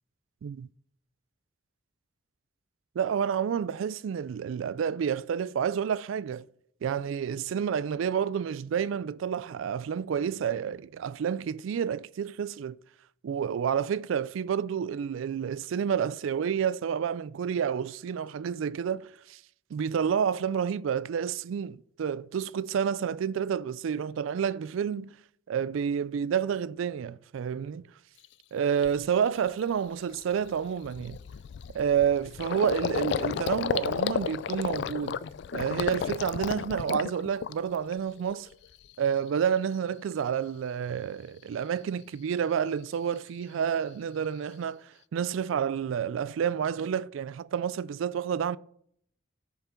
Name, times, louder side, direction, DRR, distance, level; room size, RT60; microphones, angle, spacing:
voice 1, 3.0-6.4 6.8-12.8 13.2-19.4 19.7-25.1 25.5-27.8 28.5-31.2 31.7-35.2 35.5-38.5 39.0-48.6, right 7 dB, 85° right, 0.3 m, -29 dB
Gurgling, 28.2-28.3 28.8-29.1 29.5-29.6 29.9-37.9 38.3-38.9, left 7 dB, 60° left, 0.3 m, -33 dB
10.5 x 5.7 x 4.4 m
head